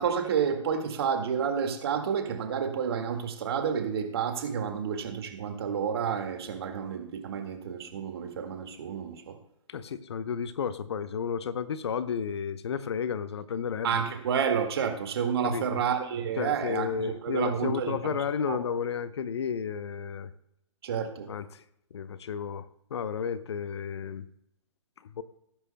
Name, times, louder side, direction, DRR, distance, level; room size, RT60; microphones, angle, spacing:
voice 1, 0.0-9.4 13.8-18.1 18.5-18.6 20.8-21.3, right 7 dB, 50° right, 5 dB, 1.9 m, -30 dB
voice 2, 9.7-14.0 15.4-15.8 16.4-20.3 21.3-21.6 21.9-24.3 25.0-25.2, left 7 dB, 60° left, 15 dB, 0.7 m, -32 dB
19.0 x 10.0 x 2.2 m, 0.79 s
figure-of-eight pair, 135°, 16 cm